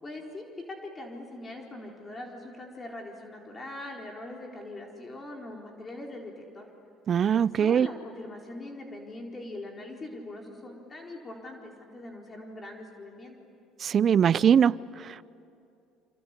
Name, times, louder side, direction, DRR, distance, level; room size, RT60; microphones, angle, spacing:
voice 1, 0.0-6.7 7.3-13.3, left 2 dB, 25° left, 4.2 m, -42 dB
voice 2, 7.1-7.9 13.8-15.2, right 8 dB, 45° right, 0.6 m, -22 dB
27.5 x 25.5 x 8.4 m
supercardioid pair, 90°, 0 cm